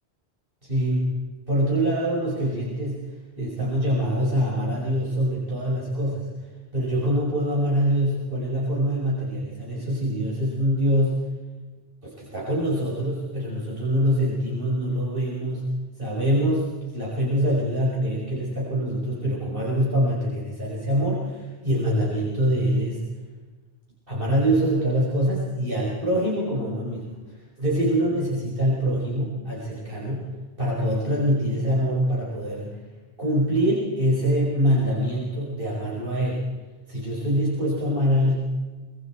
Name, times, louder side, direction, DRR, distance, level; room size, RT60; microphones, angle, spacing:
voice 1, 0.6-1.1 1.5-6.3 6.7-11.2 12.0-15.6 16.0-16.7 16.9-23.0 24.1-27.2 27.6-30.3 30.6-32.8 33.2-36.4 36.9-38.4, equal, 60° right, -5 dB, 5.6 m, -24 dB
25.0 x 23.0 x 4.5 m, 1.3 s
omnidirectional pair, 1.0 m